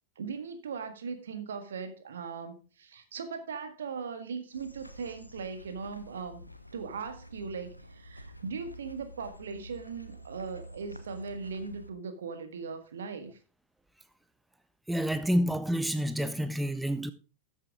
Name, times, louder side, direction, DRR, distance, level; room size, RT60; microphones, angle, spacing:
voice 1, 0.1-13.4, right 5 dB, 65° right, 1.7 m, -39 dB
sound 1, 4.5-11.9, equal, 90° left, 0.9 m, -49 dB
voice 2, 14.9-17.1, equal, 5° right, 0.6 m, -28 dB
13.0 x 7.4 x 3.7 m
figure-of-eight pair, 90°, 0 cm